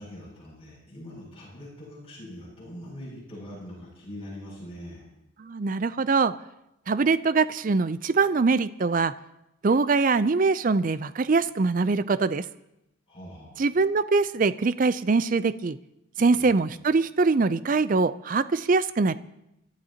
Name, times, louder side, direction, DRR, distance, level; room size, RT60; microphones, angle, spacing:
voice 1, 0.0-5.0 13.1-13.5 16.3-16.5, equal, 30° left, -5 dB, 6.8 m, -42 dB
voice 2, 5.4-6.3 6.9-9.1 9.6-12.4 13.6-15.8 16.2-19.1, right 4 dB, 40° right, 15 dB, 0.4 m, -23 dB
29.0 x 12.5 x 2.9 m, 0.87 s
head